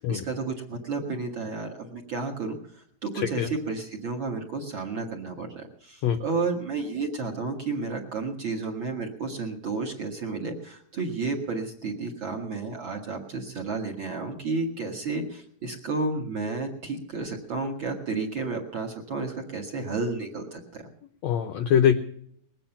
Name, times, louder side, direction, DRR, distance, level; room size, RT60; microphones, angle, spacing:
voice 1, 0.0-20.8, right 3 dB, 45° right, 1 dB, 1.8 m, -32 dB
voice 2, 21.2-21.9, left 9 dB, 85° left, 7 dB, 1.5 m, -22 dB
20.5 x 8.9 x 7.0 m, 0.66 s
omnidirectional pair, 4.2 m